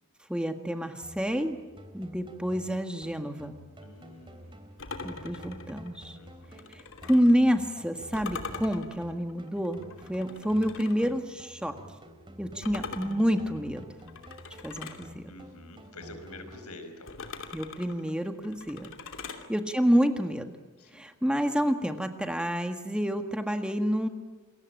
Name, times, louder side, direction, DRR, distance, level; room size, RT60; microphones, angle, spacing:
voice 1, 0.3-1.6 1.9-3.6 5.0-6.2 6.7-9.8 10.1-11.8 12.4-13.9 14.6-15.3 17.5-19.0 19.5-20.5 20.9-24.1, equal, 5° right, 6 dB, 1.7 m, -28 dB
sound 1, 1.0-17.0, equal, 25° right, 3.2 m, -50 dB
voice 2, 3.8-4.7 6.2-6.7 10.2-10.3 15.3-17.1 19.2-19.5 20.8-21.0, left 2 dB, 85° left, 8 dB, 5.3 m, -48 dB
sound 2, 4.8-7.4 8.1-11.1 12.6-15.1 17.1-19.5, left 4 dB, 60° left, 2.8 m, -42 dB
28.5 x 22.5 x 9.0 m, 1.3 s
head